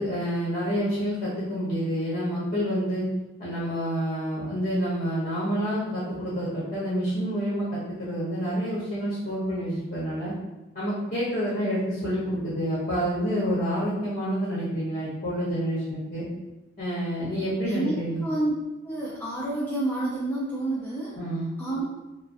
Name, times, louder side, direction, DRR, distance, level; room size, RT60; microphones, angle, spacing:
voice 1, 0.0-3.0 3.4-10.3 10.7-16.3 16.8-18.2 21.2-21.5, equal, 40° left, -10 dB, 0.7 m, -28 dB
voice 2, 17.6-18.5 18.8-21.2 21.6-21.8, right 2 dB, 10° left, -9 dB, 0.4 m, -29 dB
2.5 x 2.2 x 2.3 m, 1.0 s
head